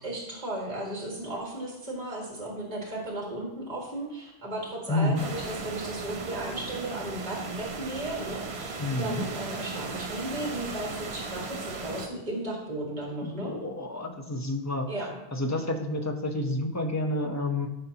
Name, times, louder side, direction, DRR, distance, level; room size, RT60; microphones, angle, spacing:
voice 1, 0.0-13.6 14.9-15.1, right 1 dB, 40° right, -2 dB, 2.0 m, -35 dB
voice 2, 4.9-5.2 8.8-9.2 13.2-14.9 15.3-17.7, left 2 dB, 15° left, 3 dB, 0.8 m, -29 dB
sound 1, 5.2-12.1, right 4 dB, 75° right, 1.2 m, -37 dB
13.5 x 5.3 x 2.9 m, 0.98 s
omnidirectional pair, 1.1 m